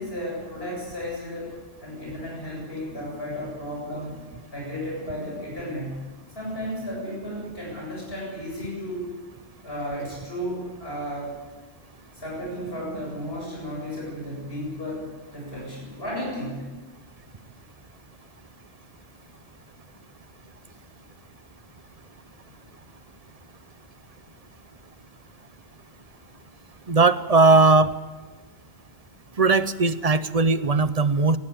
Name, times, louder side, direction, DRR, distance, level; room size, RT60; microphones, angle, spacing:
voice 1, 0.0-1.5 1.8-4.2 4.5-6.0 6.3-9.1 9.6-11.3 12.1-16.7, equal, 70° left, -3 dB, 8.1 m, -33 dB
voice 2, 26.9-27.9 29.4-31.4, right 3 dB, 40° right, 13 dB, 0.9 m, -18 dB
21.5 x 18.5 x 8.6 m, 1.3 s
omnidirectional pair, 1.1 m